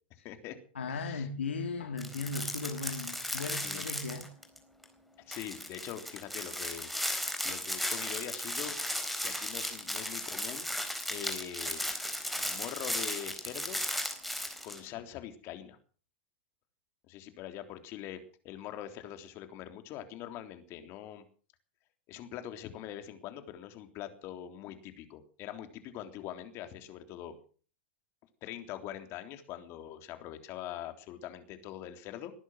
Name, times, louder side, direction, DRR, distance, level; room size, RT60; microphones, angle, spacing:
voice 1, 0.1-0.6 0.9-1.3 3.6-3.8 5.3-6.9 7.4-8.8 9.2-10.7 11.1-11.9 12.4-13.8 14.6-15.8 17.1-21.2 22.1-27.4 28.4-32.3, left 11 dB, 45° left, 8 dB, 3.4 m, -43 dB
voice 2, 0.8-4.3, left 4 dB, 90° left, 5 dB, 2.2 m, -37 dB
sound 1, 2.0-4.6 4.8-4.9 5.3-14.8, left 1 dB, ahead, 4.2 m, -36 dB
20.5 x 11.0 x 6.4 m, 0.41 s
hypercardioid pair, 110°, 6 cm